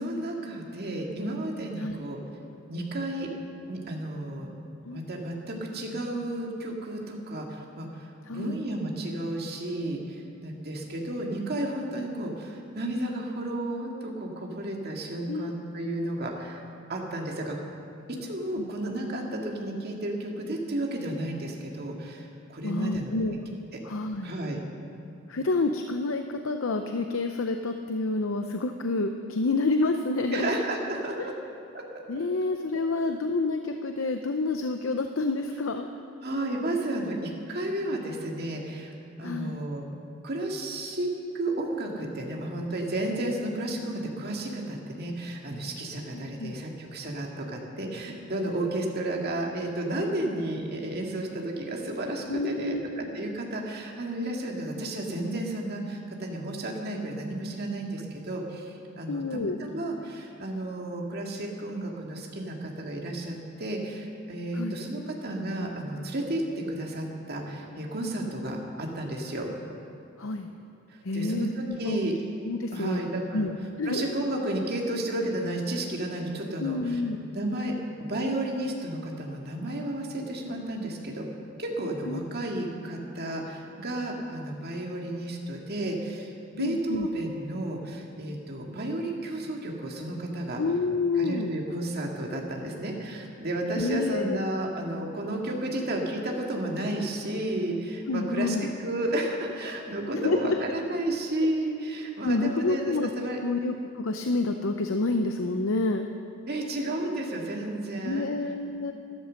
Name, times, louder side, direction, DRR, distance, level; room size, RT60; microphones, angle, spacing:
voice 1, 0.0-2.2 2.7-3.3 3.7-4.5 4.9-16.6 16.9-17.6 18.1-23.4 23.7-23.8 24.2-24.6 30.3-31.3 31.7-31.8 36.2-39.9 40.2-41.1 41.3-69.5 70.9-72.1 72.7-73.5 73.8-77.0 77.3-77.7 78.1-81.3 81.6-90.6 91.1-103.4 106.5-108.3, right 1 dB, 50° right, 0 dB, 2.1 m, -32 dB
voice 2, 8.3-8.6 15.3-15.5 15.9-16.1 18.6-18.7 22.6-23.4 23.8-24.3 25.3-30.5 32.1-35.9 39.2-39.5 46.1-46.6 52.3-52.9 59.1-59.6 64.5-64.8 70.2-70.5 71.0-72.0 72.4-73.0 73.3-73.5 73.8-74.0 76.6-77.2 82.1-82.2 86.6-87.1 90.6-91.5 93.7-94.4 98.1-98.7 100.1-100.6 101.4-101.5 102.2-103.1 103.4-106.1 108.0-108.9, left 3 dB, 75° left, 6 dB, 0.7 m, -28 dB
13.5 x 12.5 x 6.4 m, 2.8 s
head